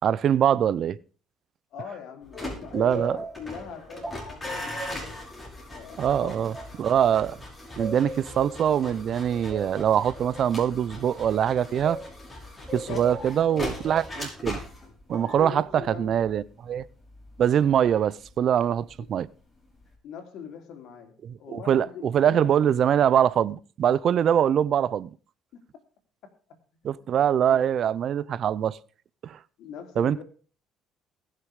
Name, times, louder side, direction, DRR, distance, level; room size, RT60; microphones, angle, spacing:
voice 1, 0.0-1.0 2.7-3.2 6.0-6.5 6.8-7.4 7.8-12.0 12.7-14.6 15.1-16.8 17.4-19.3 21.5-25.1 26.8-28.8 29.2-29.4 30.0-30.2, right 9 dB, 55° right, 0.6 m, -23 dB
voice 2, 1.7-5.2 5.7-6.6 12.7-13.4 15.3-16.3 19.0-19.1 20.0-22.6 22.8-23.0 25.5-25.7 26.2-26.3 26.9-27.7 29.6-30.2, left 7 dB, 70° left, 3.1 m, -42 dB
sound 1, 2.2-19.2 19.5-19.9, left 1 dB, 20° left, 5.4 m, -40 dB
sound 2, 2.3-7.3 7.8-12.1 12.7-14.1 15.1-15.6, right 1 dB, ahead, 6.6 m, -40 dB
20.0 x 6.7 x 4.9 m
cardioid pair, 105°, 0 cm